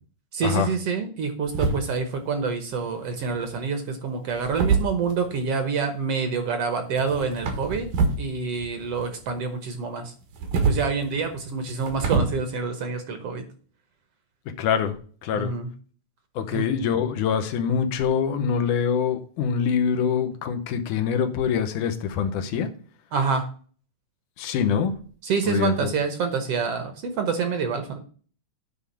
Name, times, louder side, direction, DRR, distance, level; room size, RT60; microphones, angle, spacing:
voice 1, 0.3-7.9 8.2-10.1 10.6-13.4 15.3-15.7 16.5-16.6 23.1-23.5 25.2-28.0, right 5 dB, 60° right, 7 dB, 1.7 m, -27 dB
sound 1, 1.5-2.2 3.2-3.6 4.3-5.4 7.0-8.3 8.5-9.4 10.2-12.2, right 4 dB, 80° right, 3.0 m, -26 dB
voice 2, 14.6-15.0 15.2-15.5 16.4-22.7 24.4-24.9 25.5-25.9, left 7 dB, 85° left, 7 dB, 2.5 m, -24 dB
9.6 x 3.5 x 6.9 m, 0.42 s
omnidirectional pair, 3.5 m